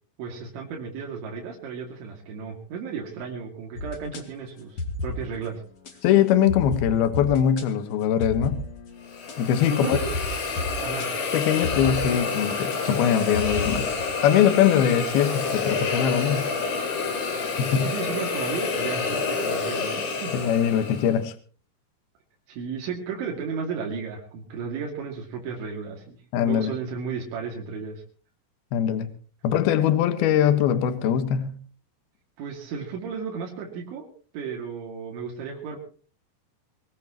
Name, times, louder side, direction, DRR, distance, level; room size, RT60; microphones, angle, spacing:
voice 1, 0.2-5.6 5.9-6.0 9.7-10.1 10.8-11.2 17.8-20.4 22.5-26.2 26.4-28.0 32.4-34.1 34.3-35.8, right 5 dB, 85° right, 4.8 m, -34 dB
sound 1, 3.8-4.2 4.8-5.5 5.8-5.9 6.5-14.0, left 2 dB, 45° left, 2.3 m, -34 dB
voice 2, 6.0-8.6 9.4-10.0 11.3-13.9 14.2-16.5 17.6-17.9 20.3-21.3 26.3-26.7 28.7-29.1 29.4-31.6, left 9 dB, 65° left, 2.9 m, -22 dB
Hiss, 9.0-21.2, left 4 dB, 90° left, 6.5 m, -28 dB
24.0 x 18.0 x 3.0 m
omnidirectional pair, 5.2 m